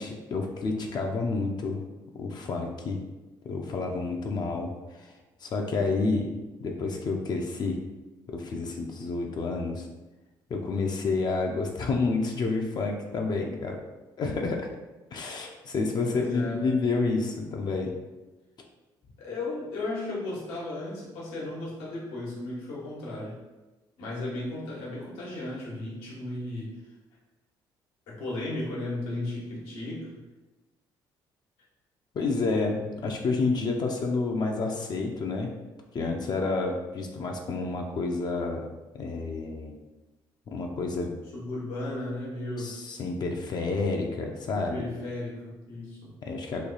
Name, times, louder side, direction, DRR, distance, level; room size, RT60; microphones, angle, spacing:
voice 1, 0.0-1.8 2.1-3.0 3.4-5.1 5.4-6.3 6.6-7.8 8.3-9.9 10.5-13.8 14.2-14.7 15.1-17.9 32.1-35.5 35.9-38.7 38.9-39.7 40.5-41.1 42.6-44.8 46.3-46.7, left 3 dB, 50° left, 2 dB, 0.5 m, -29 dB
voice 2, 16.1-16.6 19.2-23.4 24.0-26.7 28.1-30.2 41.2-42.7 44.7-46.1, left 2 dB, 90° left, -5 dB, 1.2 m, -35 dB
3.1 x 2.3 x 3.9 m, 1.1 s
cardioid pair, 80°, 9 cm